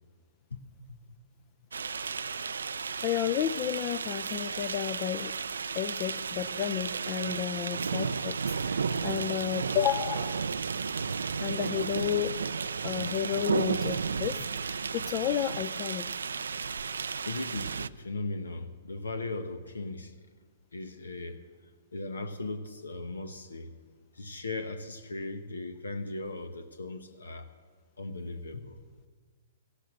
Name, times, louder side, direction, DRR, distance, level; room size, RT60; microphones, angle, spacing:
sound 1, 1.7-17.9, right 5 dB, 80° right, 0.4 m, -33 dB
voice 1, 3.0-5.3 5.7-8.4 8.6-10.4 11.4-12.3 12.8-16.1, left 11 dB, 35° left, 12 dB, 0.4 m, -32 dB
voice 2, 17.3-20.1 20.7-21.4 21.9-23.7 24.1-27.5 28.0-28.8, left 2 dB, 85° left, 9 dB, 0.9 m, -38 dB
14.0 x 12.0 x 6.4 m, 1.6 s
hypercardioid pair, 125°, 0 cm